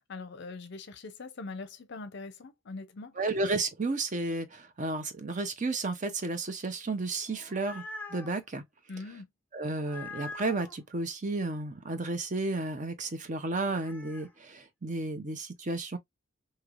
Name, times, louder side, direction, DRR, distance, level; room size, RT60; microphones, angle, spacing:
voice 1, 0.1-3.2 8.9-9.3, left 3 dB, 55° left, 0.6 m, -42 dB
voice 2, 3.2-7.8 8.1-8.6 9.5-16.0, right 2 dB, 35° right, 0.6 m, -32 dB
sound 1, 7.2-8.4 9.8-10.8 13.6-14.3, left 3 dB, 10° left, 0.6 m, -44 dB
3.2 x 2.8 x 2.4 m
head